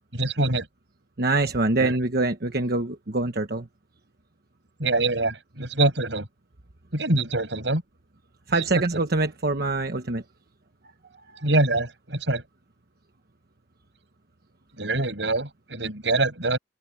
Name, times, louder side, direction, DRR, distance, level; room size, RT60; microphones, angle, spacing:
voice 1, 0.1-0.7 1.8-2.0 4.8-6.3 6.9-7.8 8.6-8.8 11.4-12.4 14.8-16.6, right 2 dB, 85° right, 6.5 m, -24 dB
voice 2, 1.2-3.6 8.5-10.2, right 2 dB, 60° right, 1.2 m, -24 dB
open air
head